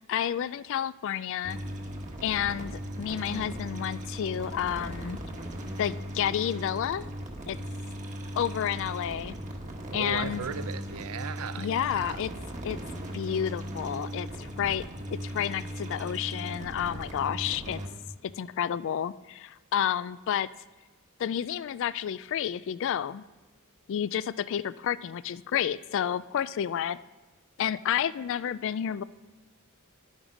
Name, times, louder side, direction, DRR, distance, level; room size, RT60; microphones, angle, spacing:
voice 1, 0.1-1.6 2.2-5.2 5.8-7.0 7.5-7.6 8.4-9.3 9.9-10.5 11.6-12.3 12.6-12.8 13.1-14.8 15.1-17.8 18.2-20.5 21.2-23.2 23.9-27.0 27.6-29.0, left 9 dB, 60° left, 0.3 m, -30 dB
sound 1, 1.4-17.9, equal, 35° right, 1.3 m, -38 dB
voice 2, 9.9-12.2, right 6 dB, 75° right, 0.5 m, -37 dB
11.0 x 9.0 x 5.0 m
head